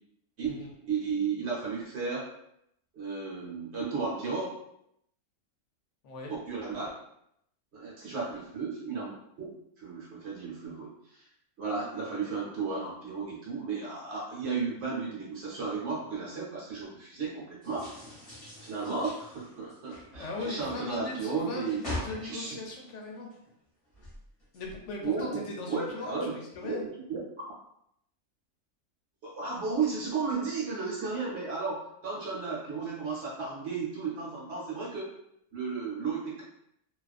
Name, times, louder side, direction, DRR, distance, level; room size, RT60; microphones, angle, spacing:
voice 1, 0.9-2.3 2.9-4.5 6.3-6.9 7.7-11.2 11.6-17.9 18.6-21.8 22.2-22.6 25.0-25.4 25.7-26.3 26.6-27.3 29.2-35.1 35.5-36.4, right 4 dB, 60° right, -6 dB, 1.0 m, -34 dB
sound 1, 17.6-23.5 23.8-25.1, left 1 dB, 30° left, 0.9 m, -43 dB
voice 2, 20.1-23.3 24.5-26.8, left 3 dB, 70° left, -1 dB, 0.9 m, -39 dB
2.4 x 2.3 x 2.3 m, 0.76 s
omnidirectional pair, 1.4 m